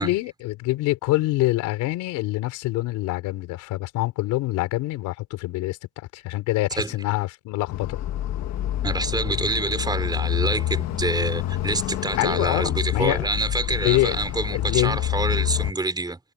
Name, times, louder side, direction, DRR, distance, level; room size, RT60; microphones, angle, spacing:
voice 1, 0.0-8.0 12.1-13.3 13.7-14.2 14.5-15.0, left 18 dB, 85° left, 3.8 m, -25 dB
sound 1, 7.7-15.7, left 12 dB, 60° left, 1.7 m, -27 dB
voice 2, 8.8-16.2, right 2 dB, 15° right, 4.0 m, -27 dB
cardioid pair, 120°, 30 cm